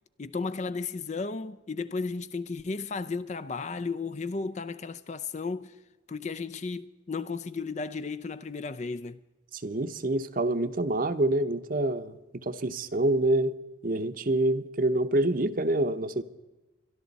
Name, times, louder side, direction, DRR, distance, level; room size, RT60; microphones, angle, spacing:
voice 1, 0.2-5.8 6.1-9.2, left 4 dB, 35° left, 0.4 m, -34 dB
voice 2, 9.5-13.5 13.8-16.2, right 1 dB, 45° right, 0.8 m, -27 dB
25.0 x 11.5 x 4.1 m
head